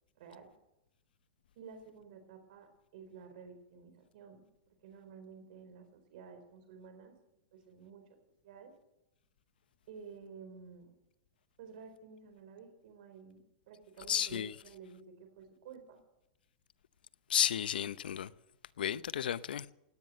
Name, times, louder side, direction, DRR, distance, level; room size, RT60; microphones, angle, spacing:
voice 1, 0.2-0.5 1.6-7.2 7.5-8.1 8.4-8.7 9.9-10.9 11.6-16.0, right 6 dB, 60° right, 4.0 m, -52 dB
voice 2, 14.1-14.5 17.3-18.3 18.8-19.7, left 9 dB, 90° left, 0.7 m, -32 dB
18.0 x 9.8 x 7.7 m
hypercardioid pair, 145°, 5 cm